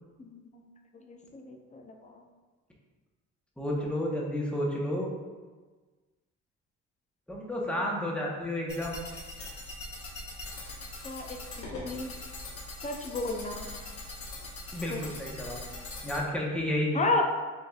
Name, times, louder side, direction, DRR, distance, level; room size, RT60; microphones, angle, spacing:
voice 1, 0.2-0.6 1.1-2.2 11.0-12.1 12.8-13.7 14.9-15.0 16.9-17.2, left 2 dB, 25° left, 3 dB, 0.6 m, -33 dB
voice 2, 3.6-5.1 7.3-9.0 14.7-15.6 16.0-17.0, left 1 dB, 5° left, -3 dB, 1.0 m, -31 dB
sound 1, 8.7-16.2, left 2 dB, 50° left, 1.2 m, -42 dB
7.4 x 2.6 x 2.4 m, 1.3 s
cardioid pair, 90°, 30 cm